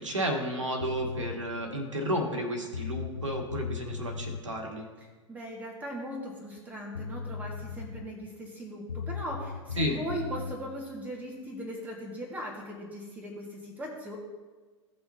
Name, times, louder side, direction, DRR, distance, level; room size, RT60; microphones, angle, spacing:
voice 1, 0.0-4.9 9.8-10.0, equal, 75° right, 2 dB, 1.8 m, -32 dB
sound 1, 0.8-1.4 2.4-2.5 2.7-4.4 6.6-6.7 6.9-8.1 8.9-10.6, left 5 dB, 80° left, 0.6 m, -37 dB
voice 2, 5.0-14.2, equal, 10° right, -3 dB, 1.9 m, -39 dB
16.5 x 5.6 x 2.8 m, 1.4 s
figure-of-eight pair, 95°, 16 cm